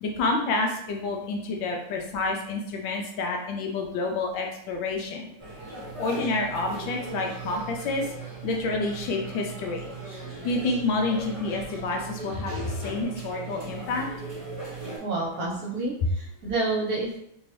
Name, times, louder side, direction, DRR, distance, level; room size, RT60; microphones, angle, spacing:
voice 1, 0.0-5.3 5.9-8.1 8.4-9.9 10.4-14.1, left 3 dB, 75° left, 1 dB, 1.2 m, -28 dB
sound 1, 5.4-15.0, right 4 dB, 25° right, 0.7 m, -38 dB
voice 2, 15.0-17.2, right 2 dB, 55° right, -4 dB, 1.2 m, -29 dB
3.4 x 2.6 x 3.2 m, 0.77 s
omnidirectional pair, 2.4 m